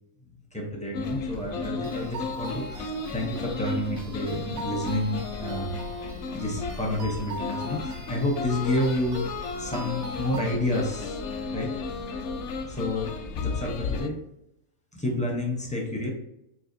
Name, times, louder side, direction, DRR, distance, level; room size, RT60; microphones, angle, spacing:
voice 1, 0.5-5.8 6.3-9.3 9.6-11.2 11.5-11.7 12.7-14.2 14.9-16.1, left 1 dB, 10° left, -2 dB, 0.4 m, -29 dB
sound 1, 0.9-14.1, left 4 dB, 65° left, 0.8 m, -34 dB
sound 2, 1.8-10.9, equal, 60° right, 0.6 m, -42 dB
4.7 x 2.6 x 2.6 m, 0.80 s
omnidirectional pair, 1.4 m